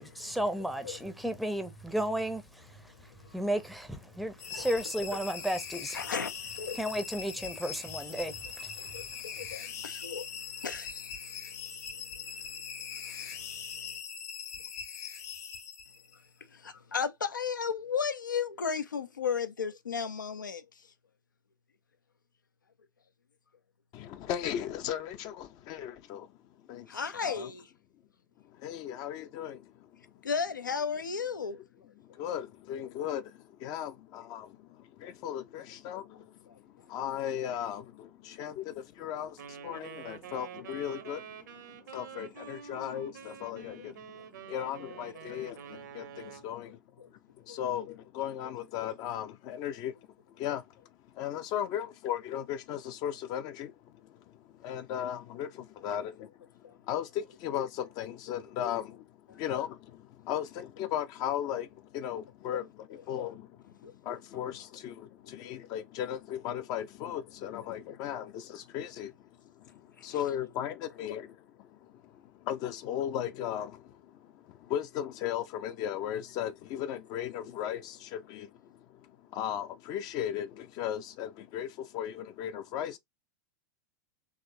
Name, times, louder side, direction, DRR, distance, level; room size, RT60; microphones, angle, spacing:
voice 1, 0.0-2.8 3.3-6.0 6.7-8.9, right 1 dB, ahead, 0.6 m, -33 dB
sound 1, 4.4-16.3, left 7 dB, 55° left, 1.3 m, -41 dB
voice 2, 5.9-6.8 8.8-11.4 12.4-12.5 12.9-13.5 16.5-20.7 26.9-27.6 30.2-31.6 39.8-39.9 44.4-44.5 46.5-46.6 47.0-47.1 47.5-47.6 56.6-56.7 63.8-63.9 65.4-65.5, left 6 dB, 80° left, 0.6 m, -35 dB
voice 3, 23.9-26.3 26.7-27.5 28.4-30.2 32.0-44.1 44.4-46.8 47.1-50.0 50.3-83.0, left 10 dB, 40° left, 0.6 m, -37 dB
Wind instrument woodwind instrument, 39.4-46.5, right 8 dB, 65° right, 0.9 m, -47 dB
4.9 x 3.1 x 2.7 m
figure-of-eight pair, 90°, 10 cm